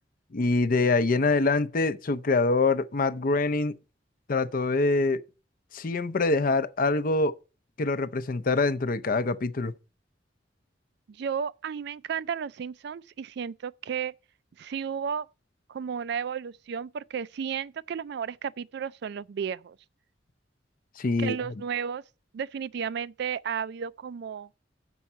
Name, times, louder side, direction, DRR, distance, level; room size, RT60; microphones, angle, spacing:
voice 1, 0.3-3.8 4.3-5.2 5.7-7.3 7.8-9.7 21.0-21.4, left 3 dB, 50° left, 0.6 m, -25 dB
voice 2, 11.1-14.1 14.6-15.3 15.7-19.8 21.2-22.0 22.3-24.5, right 7 dB, 60° right, 0.3 m, -33 dB
7.0 x 5.5 x 7.3 m
head